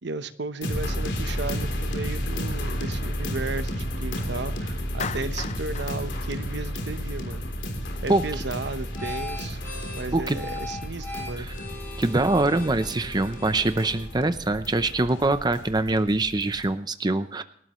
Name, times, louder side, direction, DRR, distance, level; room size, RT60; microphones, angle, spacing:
voice 1, 0.0-7.4 8.0-9.6 9.9-11.5, right 3 dB, 70° right, 11 dB, 0.9 m, -34 dB
sound 1, 0.6-16.7, equal, 85° left, 3.4 m, -32 dB
Clapping, 5.0-7.3, left 7 dB, 40° left, 0.6 m, -37 dB
sound 2, 7.3-16.1, left 2 dB, 10° left, 7.4 m, -41 dB
voice 2, 12.0-17.4, right 2 dB, 25° right, 11 dB, 0.7 m, -24 dB
28.5 x 12.5 x 3.1 m, 0.70 s
head